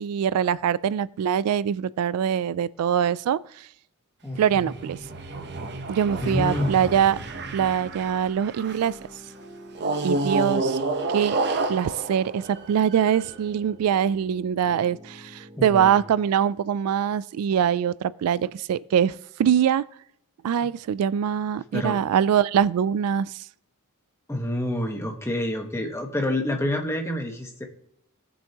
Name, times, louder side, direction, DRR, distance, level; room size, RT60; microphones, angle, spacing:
voice 1, 0.0-3.4 4.4-5.0 5.9-7.2 7.5-9.0 10.0-10.8 11.1-11.4 11.7-19.8 20.4-23.4, right 8 dB, 75° right, 0.3 m, -23 dB
voice 2, 4.2-4.7 6.2-6.9 15.6-16.0 21.7-22.0 24.3-27.6, left 1 dB, 10° left, 1.3 m, -28 dB
sound 1, 4.3-9.0 9.7-13.3, right 2 dB, 50° right, 0.9 m, -30 dB
sound 2, 4.5-16.3, equal, 30° right, 3.4 m, -48 dB
17.5 x 7.0 x 2.9 m
head